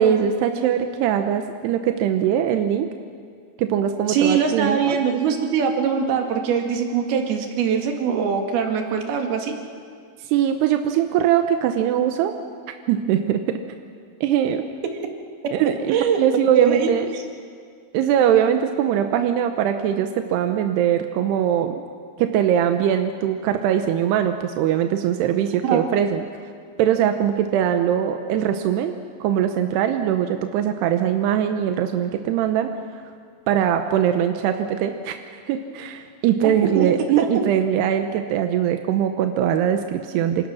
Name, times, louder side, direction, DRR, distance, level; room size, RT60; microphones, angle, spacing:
voice 1, 0.0-2.9 3.6-5.0 10.3-12.4 12.9-13.6 14.2-14.7 15.5-17.1 17.9-21.8 22.2-26.3 26.8-32.7 33.5-35.2 35.5-40.5, right 9 dB, 80° right, 6 dB, 2.5 m, -21 dB
voice 2, 4.1-9.5 15.9-16.2 16.5-17.2 25.6-25.9 36.8-36.9, right 6 dB, 60° right, 3 dB, 3.4 m, -22 dB
27.5 x 26.5 x 6.3 m, 2.2 s
omnidirectional pair, 5.8 m